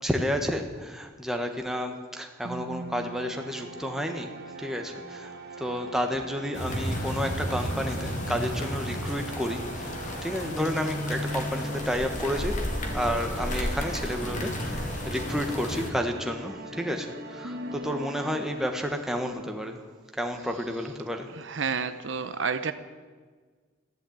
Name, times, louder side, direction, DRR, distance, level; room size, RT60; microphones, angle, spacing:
voice 1, 0.0-4.3 4.6-12.6 12.9-19.8 20.1-21.3, equal, ahead, 3 dB, 1.3 m, -31 dB
sound 1, 2.4-19.2, right 1 dB, 50° right, 1.6 m, -40 dB
sound 2, 6.5-15.9, equal, 35° left, 2.3 m, -33 dB
voice 2, 21.4-22.7, right 5 dB, 65° right, 11 dB, 0.8 m, -30 dB
14.5 x 11.5 x 8.8 m, 1.5 s
head